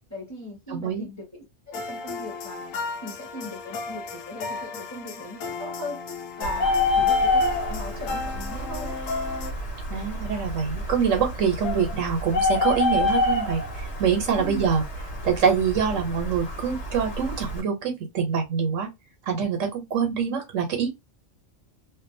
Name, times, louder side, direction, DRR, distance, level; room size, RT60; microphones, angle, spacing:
voice 1, 0.1-2.7 3.0-6.0 6.4-9.0 14.4-14.7, equal, 15° left, 1.1 m, -38 dB
voice 2, 0.7-1.1 9.9-14.8 15.2-18.9 19.3-20.9, right 6 dB, 75° right, 1.1 m, -25 dB
sound 1, 1.7-9.5, left 4 dB, 80° left, 1.0 m, -34 dB
Bird, 6.4-17.6, left 2 dB, 65° left, 1.2 m, -27 dB
2.6 x 2.2 x 2.6 m
omnidirectional pair, 1.3 m